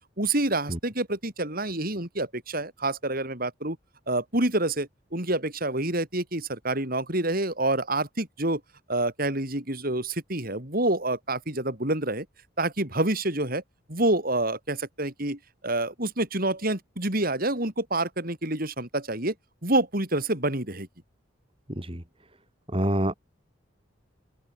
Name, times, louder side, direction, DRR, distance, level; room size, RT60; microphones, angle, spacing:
voice 1, 0.2-3.8 4.1-8.6 8.9-12.3 12.6-13.6 13.9-19.3 19.6-20.9, right 2 dB, 45° right, 6.2 m, -27 dB
voice 2, 21.7-22.0 22.7-23.1, right 1 dB, 30° right, 3.9 m, -26 dB
open air
head